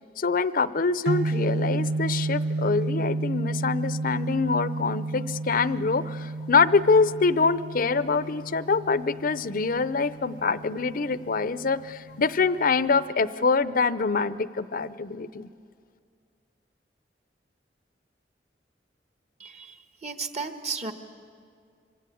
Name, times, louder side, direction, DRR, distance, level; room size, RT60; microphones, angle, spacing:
voice 1, 0.2-15.5, left 4 dB, 55° left, 15 dB, 0.6 m, -25 dB
sound 1, 1.1-13.1, right 2 dB, 80° right, 0.8 m, -32 dB
voice 2, 19.4-20.9, right 4 dB, 40° right, 7 dB, 1.4 m, -34 dB
26.0 x 24.5 x 8.5 m, 2.3 s
head